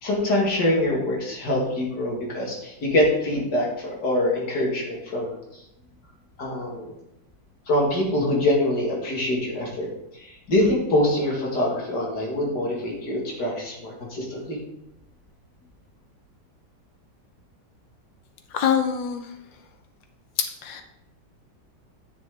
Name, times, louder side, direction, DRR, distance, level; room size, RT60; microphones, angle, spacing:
voice 1, 0.0-5.3 6.4-6.9 7.7-9.9 10.1-14.6, left 1 dB, 65° left, -2 dB, 2.7 m, -24 dB
voice 2, 18.5-19.3 20.4-20.8, left 8 dB, 85° left, 6 dB, 1.7 m, -25 dB
9.9 x 6.2 x 3.8 m, 0.83 s
omnidirectional pair, 2.0 m